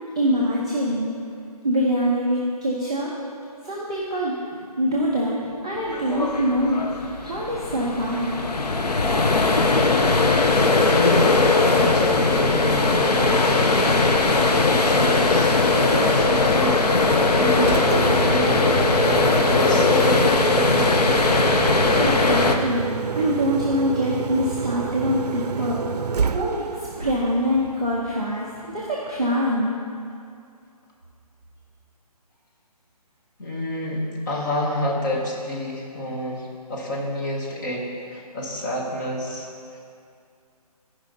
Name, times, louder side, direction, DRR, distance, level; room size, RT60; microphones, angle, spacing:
voice 1, 0.2-1.1 1.6-3.1 3.6-4.4 4.8-8.4 22.0-29.7, equal, 10° right, -11 dB, 0.3 m, -24 dB
sound 1, 5.9-22.6, left 3 dB, 85° left, 0.9 m, -19 dB
voice 2, 10.9-13.9 14.5-21.1 33.4-39.8, equal, 30° left, -3 dB, 1.6 m, -29 dB
Engine, 17.5-28.4, right 6 dB, 80° right, 0.4 m, -29 dB
14.0 x 5.1 x 4.0 m, 2.4 s
figure-of-eight pair, 160°, 20 cm